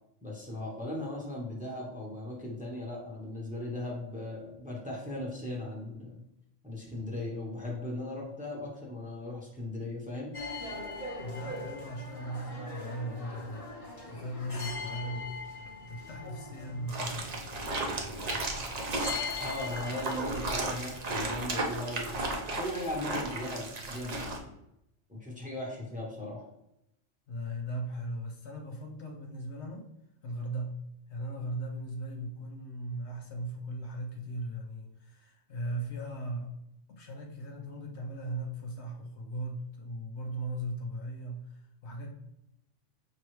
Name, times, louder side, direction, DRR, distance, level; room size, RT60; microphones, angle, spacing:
voice 1, 0.2-6.1 6.6-10.3 19.4-24.5 25.1-26.5, left 1 dB, 5° right, -3 dB, 0.8 m, -38 dB
sound 1, 10.3-22.1, left 3 dB, 30° left, 0.9 m, -42 dB
voice 2, 11.2-17.4 27.3-29.9 30.2-36.6 36.9-42.1, right 1 dB, 65° left, 2 dB, 0.9 m, -38 dB
sound 2, 16.9-24.4, right 2 dB, 45° right, 0.6 m, -34 dB
5.4 x 3.1 x 3.1 m, 0.83 s
omnidirectional pair, 1.3 m